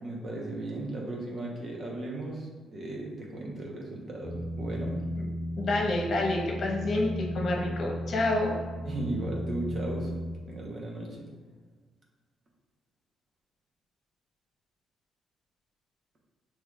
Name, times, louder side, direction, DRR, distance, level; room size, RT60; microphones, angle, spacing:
voice 1, 0.0-5.0 8.8-11.3, right 2 dB, 50° right, -1 dB, 1.0 m, -36 dB
sound 1, 4.2-10.4, equal, 20° left, 0.4 m, -35 dB
voice 2, 5.6-8.6, left 2 dB, 55° left, -1 dB, 1.0 m, -28 dB
6.4 x 3.1 x 2.4 m, 1.5 s
cardioid pair, 90°, 0 cm